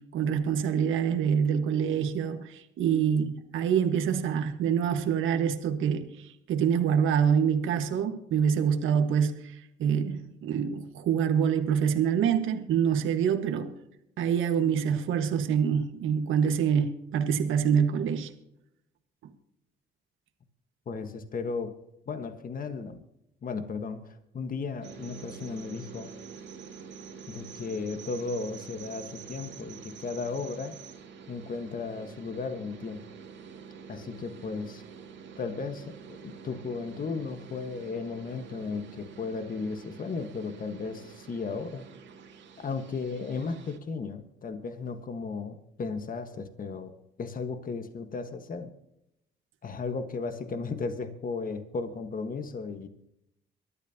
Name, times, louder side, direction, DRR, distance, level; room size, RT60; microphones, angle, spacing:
voice 1, 0.1-13.7 14.2-18.3, right 7 dB, 85° right, 6 dB, 1.6 m, -26 dB
voice 2, 20.9-21.8 22.1-23.0 23.4-26.1 27.3-30.8 31.3-33.1 33.9-34.8 35.4-41.9 42.6-46.9 47.2-48.7 49.6-52.9, left 4 dB, 45° left, 8 dB, 1.5 m, -35 dB
sound 1, 24.8-43.8, right 6 dB, 65° right, 2.3 m, -47 dB
24.0 x 12.5 x 2.9 m, 0.79 s
cardioid pair, 90°, 20 cm